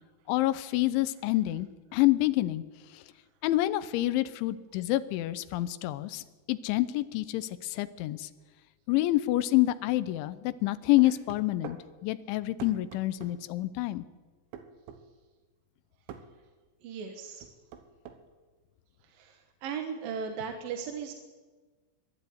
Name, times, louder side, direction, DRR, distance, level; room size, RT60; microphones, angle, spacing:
voice 1, 0.3-2.6 2.9-3.0 3.4-8.3 8.9-11.8 12.0-14.0, left 16 dB, 85° left, 13 dB, 3.2 m, -27 dB
sound 1, 11.0-11.8 12.6-13.4 14.5-15.0 16.1-16.3 17.4-18.2, right 8 dB, 80° right, 3.7 m, -44 dB
voice 2, 16.8-17.5 19.0-21.1, right 6 dB, 65° right, 5 dB, 2.5 m, -37 dB
22.5 x 12.0 x 9.5 m, 1.3 s
omnidirectional pair, 5.4 m